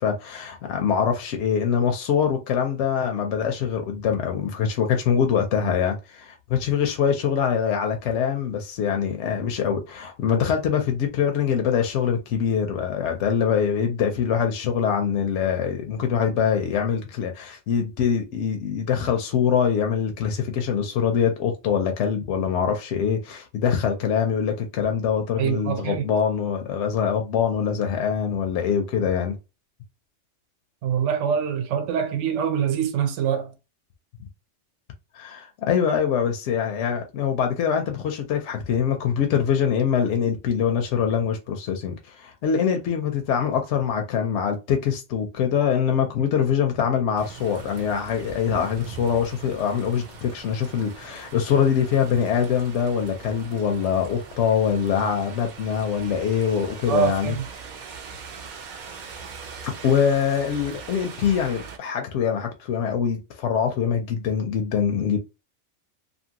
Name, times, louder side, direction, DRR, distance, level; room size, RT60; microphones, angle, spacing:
voice 1, 0.0-29.4 35.1-57.4 59.6-65.2, left 7 dB, 80° left, 0.9 m, -24 dB
voice 2, 25.4-26.0 30.8-33.5 56.9-57.5, right 7 dB, 85° right, 0.9 m, -24 dB
sound 1, 47.2-61.8, right 6 dB, 55° right, 0.6 m, -41 dB
2.7 x 2.6 x 2.7 m
omnidirectional pair, 1.2 m